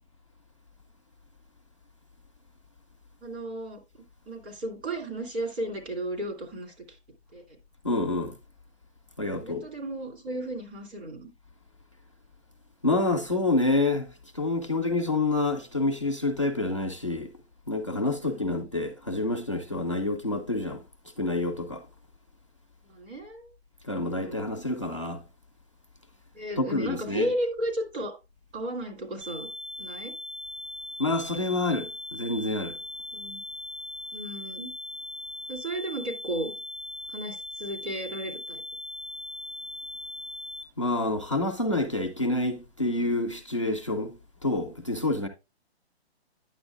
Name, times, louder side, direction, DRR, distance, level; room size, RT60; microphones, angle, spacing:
voice 1, 3.2-3.8 4.3-7.0 7.3-7.6 9.4-11.3 18.2-18.6 22.8-23.5 24.0-24.5 26.3-28.1 28.5-29.5 29.8-30.1 33.1-33.4 34.1-34.7 35.5-36.5 37.1-38.6, right 1 dB, 75° right, 3.4 m, -34 dB
voice 2, 7.8-8.4 9.2-9.6 12.8-17.3 17.7-21.9 23.8-25.2 26.6-27.3 31.0-32.8 40.8-45.3, left 2 dB, 30° left, 0.4 m, -28 dB
sound 1, 29.2-40.6, left 2 dB, 30° right, 0.5 m, -39 dB
9.4 x 7.1 x 2.4 m
hypercardioid pair, 175°, 33 cm